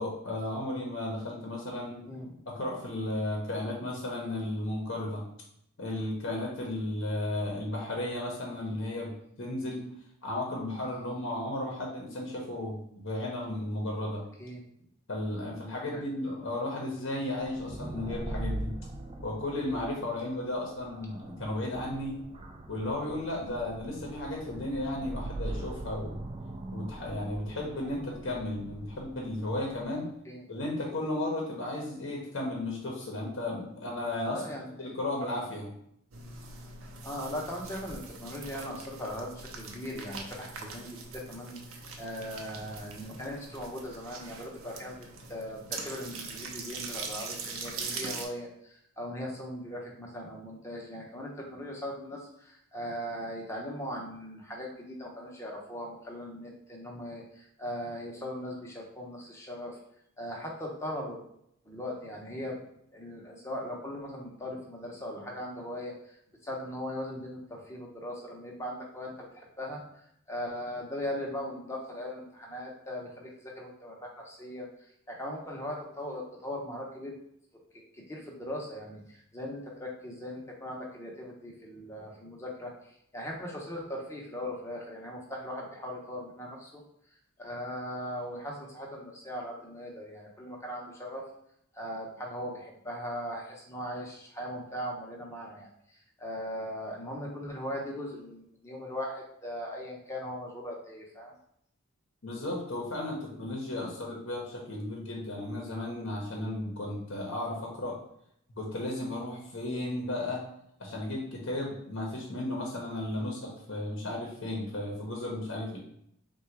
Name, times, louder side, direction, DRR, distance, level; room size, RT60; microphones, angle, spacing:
voice 1, 0.0-2.0 2.5-5.2 5.8-9.1 9.4-9.9 10.2-14.2 15.1-18.8 19.2-22.2 22.7-26.2 26.7-30.1 30.5-34.4 34.8-35.7 102.2-108.0 108.6-110.4 110.8-115.8, left 1 dB, 55° left, -1 dB, 0.8 m, -34 dB
sound 1, 17.4-29.9, right 1 dB, 25° right, 0.3 m, -41 dB
voice 2, 34.3-34.9 37.0-59.8 60.2-61.2 61.6-62.6 62.9-66.2 66.4-74.7 75.1-77.1 77.7-86.8 87.4-91.2 91.7-101.3 113.1-113.3, equal, 15° left, -1 dB, 0.7 m, -39 dB
sound 2, 36.1-48.3, right 4 dB, 65° right, 0.6 m, -42 dB
3.8 x 2.3 x 4.5 m, 0.73 s
head